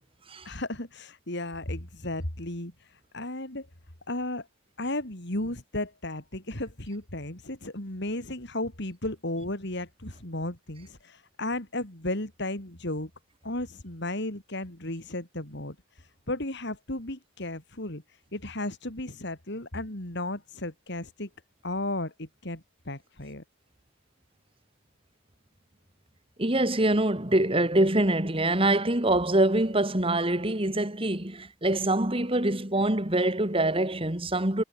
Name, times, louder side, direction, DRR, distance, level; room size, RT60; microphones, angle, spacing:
voice 1, 0.4-3.7 4.1-4.5 4.8-13.1 13.4-21.3 21.6-23.4, left 1 dB, 55° left, 4.1 m, -34 dB
voice 2, 26.4-34.6, right 1 dB, 25° right, 2.6 m, -25 dB
head